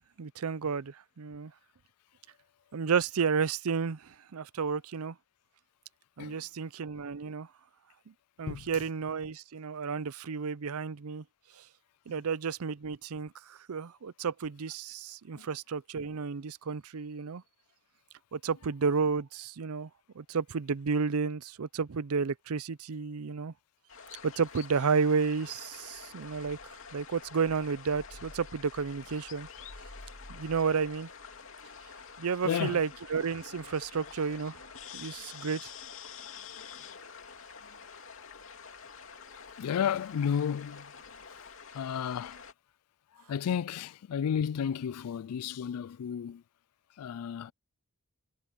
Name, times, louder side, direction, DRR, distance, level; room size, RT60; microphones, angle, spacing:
voice 1, 0.2-1.5 2.7-5.2 6.2-7.5 8.1-8.2 8.4-11.2 11.6-11.7 12.1-17.4 18.3-19.9 20.2-23.5 24.2-29.5 30.3-31.1 32.2-34.6 34.9-35.7, right 5 dB, 80° right, 0.5 m, -32 dB
sound 1, 23.9-42.5, left 5 dB, 65° left, 2.8 m, -48 dB
voice 2, 32.4-32.8 36.6-36.7 39.6-40.9 41.7-42.4 43.3-46.4 47.0-47.5, left 8 dB, 90° left, 0.4 m, -32 dB
head